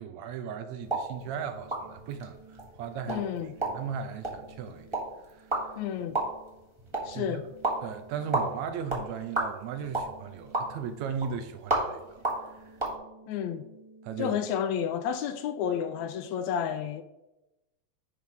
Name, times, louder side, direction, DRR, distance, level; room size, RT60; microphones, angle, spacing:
voice 1, 0.0-3.2 3.6-4.9 5.3-5.8 7.1-7.4 7.8-12.8 14.0-14.4, right 7 dB, 75° right, 1.8 m, -37 dB
sound 1, 0.8-13.0, right 2 dB, 20° right, 0.8 m, -34 dB
sound 2, 1.1-16.1, right 3 dB, 45° right, 1.4 m, -55 dB
voice 2, 3.1-3.5 5.8-6.2 7.1-7.5 13.3-13.6 14.2-17.0, left 8 dB, 80° left, 1.8 m, -31 dB
10.0 x 3.5 x 6.1 m
omnidirectional pair, 3.4 m